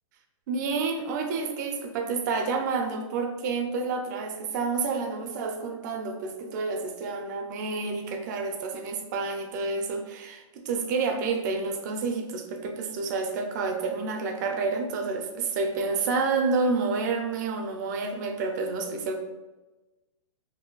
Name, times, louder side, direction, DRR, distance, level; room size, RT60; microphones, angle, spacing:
voice 1, 0.5-19.2, right 4 dB, 35° right, 5 dB, 0.4 m, -29 dB
2.6 x 2.2 x 3.7 m, 1.1 s
hypercardioid pair, 165°, 17 cm